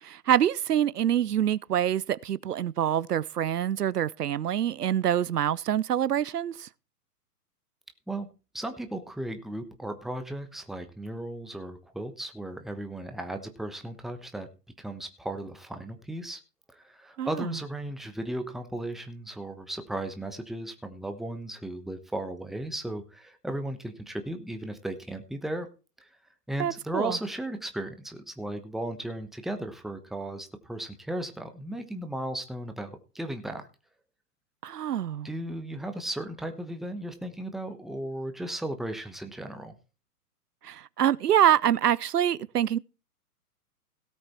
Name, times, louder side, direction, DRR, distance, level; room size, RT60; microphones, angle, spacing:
voice 1, 0.0-6.7 17.2-17.5 26.6-27.2 34.6-35.3 40.6-42.8, right 10 dB, 75° right, 0.6 m, -26 dB
voice 2, 8.5-14.5 14.8-16.4 16.7-25.7 26.5-33.7 35.2-39.7, right 1 dB, ahead, 1.0 m, -36 dB
17.0 x 7.8 x 4.3 m
figure-of-eight pair, 120°, 47 cm